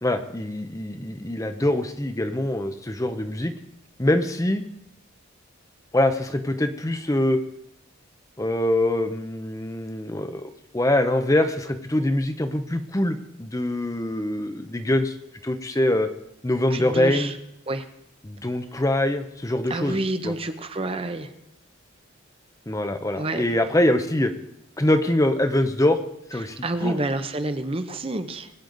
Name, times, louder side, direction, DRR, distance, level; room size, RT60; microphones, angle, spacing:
voice 1, 0.0-3.5 4.0-4.6 5.9-7.4 8.4-15.2 15.4-16.1 16.4-17.3 18.2-20.0 20.2-20.3 22.7-24.3 24.8-26.0 26.3-27.0, left 1 dB, 15° left, 8 dB, 0.6 m, -24 dB
voice 2, 16.7-17.3 17.7-17.9 19.7-21.3 23.2-23.4 26.4-28.5, right 2 dB, 25° right, 9 dB, 0.7 m, -28 dB
20.5 x 9.0 x 3.9 m, 0.80 s
head